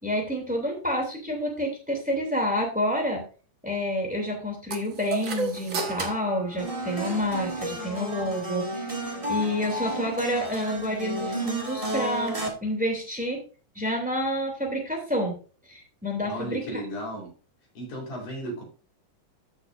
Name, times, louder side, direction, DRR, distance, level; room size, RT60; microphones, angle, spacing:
voice 1, 0.0-3.2 3.6-8.9 9.3-13.4 13.7-15.3 15.7-16.8, equal, 5° right, 1 dB, 2.2 m, -29 dB
sound 1, 4.7-7.4, right 4 dB, 60° right, 0.8 m, -33 dB
sound 2, 6.6-12.5, right 1 dB, 30° right, 0.6 m, -32 dB
voice 2, 16.3-17.3 17.8-18.6, equal, 75° left, 0 dB, 5.4 m, -34 dB
14.0 x 6.3 x 2.5 m, 0.36 s
omnidirectional pair, 3.6 m